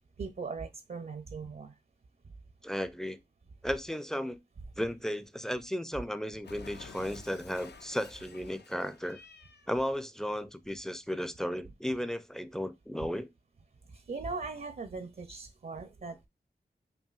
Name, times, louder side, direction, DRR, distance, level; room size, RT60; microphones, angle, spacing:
voice 1, 0.2-1.8 13.9-16.3, right 4 dB, 55° right, 0.5 m, -39 dB
voice 2, 2.6-3.2 3.6-4.4 4.8-9.2 9.7-13.3, equal, 5° left, 0.4 m, -34 dB
Cat, 6.4-9.7, left 5 dB, 70° left, 0.5 m, -51 dB
5.5 x 2.6 x 2.4 m
wide cardioid pair, 75°, 18 cm